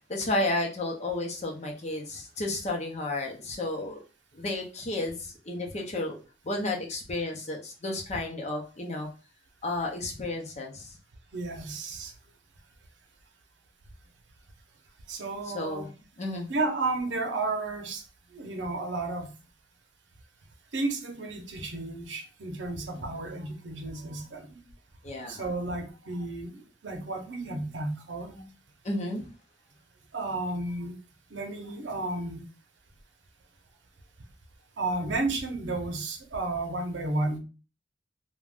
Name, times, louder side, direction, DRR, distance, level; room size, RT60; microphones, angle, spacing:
voice 1, 0.1-4.0 4.3-6.2 6.4-9.1 9.6-11.0 15.5-15.9 16.2-16.5 22.9-23.1 25.0-25.4 28.8-29.2, left 2 dB, 40° left, 0.6 m, -32 dB
voice 2, 11.3-12.1 15.1-15.9 16.5-18.0 18.3-19.3 20.7-24.6 25.3-28.5 30.1-31.0 31.3-32.5 34.8-37.4, right 2 dB, 75° right, 0.7 m, -32 dB
2.5 x 2.2 x 3.4 m
head